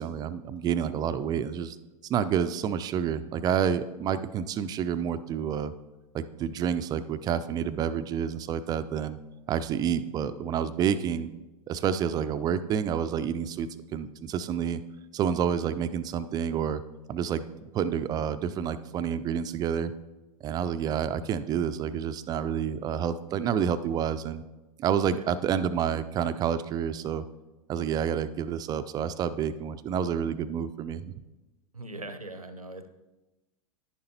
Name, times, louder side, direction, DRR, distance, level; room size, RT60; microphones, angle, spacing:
voice 1, 0.0-1.8 2.1-5.7 6.1-9.2 9.5-11.3 11.7-14.8 15.1-16.8 17.1-17.4 17.7-19.9 20.4-24.4 24.8-27.2 27.7-31.1, right 8 dB, 20° right, 12 dB, 0.4 m, -29 dB
voice 2, 31.7-32.9, right 2 dB, 85° right, 10 dB, 0.7 m, -41 dB
10.5 x 10.0 x 2.8 m, 1.1 s
figure-of-eight pair, 90°, 18 cm